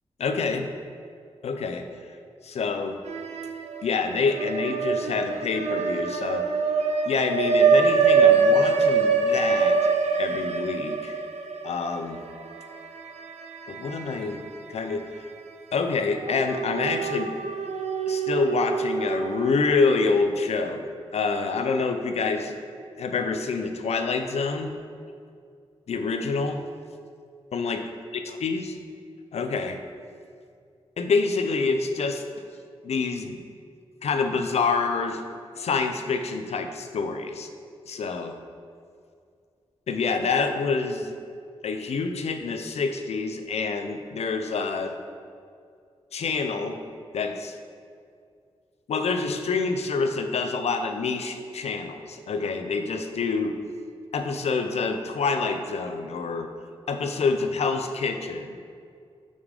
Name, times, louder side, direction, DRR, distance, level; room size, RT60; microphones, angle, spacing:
voice 1, 0.2-0.7 1.4-1.9 2.4-3.0 3.8-6.5 7.1-11.2 11.6-12.2 13.7-14.4 14.7-15.0 15.7-17.3 18.1-20.8 21.1-22.6 23.0-24.7 25.9-26.6 27.5-27.8 28.3-28.7 29.3-29.8 31.0-32.2 32.8-33.4 34.0-35.2 35.6-37.5 37.9-38.4 39.9-41.1 41.6-45.0 46.1-46.8 47.1-47.6 48.9-53.5 54.1-56.5 56.9-58.6, left 4 dB, 75° left, 6 dB, 0.5 m, -27 dB
sound 1, 3.1-3.8 4.2-14.5 14.9-15.0 16.1-19.5, right 5 dB, 85° right, 0.5 m, -24 dB
5.3 x 4.8 x 5.1 m, 2.3 s
wide cardioid pair, 85°, 11 cm